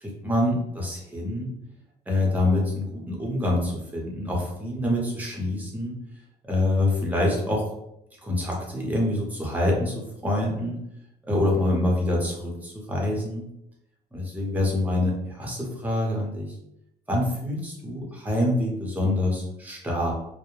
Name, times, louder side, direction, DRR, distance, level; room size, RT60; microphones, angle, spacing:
voice 1, 0.0-1.5 2.1-5.9 6.4-7.6 8.2-10.8 11.3-13.5 14.1-16.5 17.1-20.1, left 1 dB, 10° right, -2 dB, 0.8 m, -26 dB
2.2 x 2.1 x 3.0 m, 0.82 s
cardioid pair, 110°, 17 cm